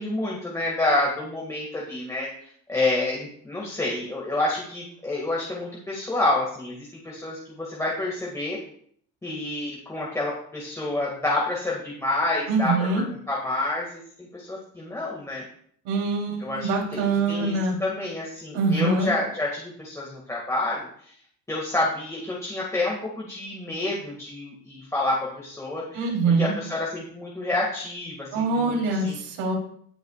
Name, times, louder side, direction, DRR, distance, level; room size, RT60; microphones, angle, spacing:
voice 1, 0.0-2.3 2.7-8.6 9.2-13.9 14.2-15.4 16.4-20.9 21.5-29.2, left 2 dB, 10° left, -4 dB, 2.0 m, -28 dB
voice 2, 12.5-13.0 15.9-17.8 18.5-19.1 25.9-26.5 28.3-29.6, right 3 dB, 75° right, -1 dB, 3.5 m, -24 dB
19.0 x 6.5 x 2.4 m, 0.62 s
cardioid pair, 140°, 32 cm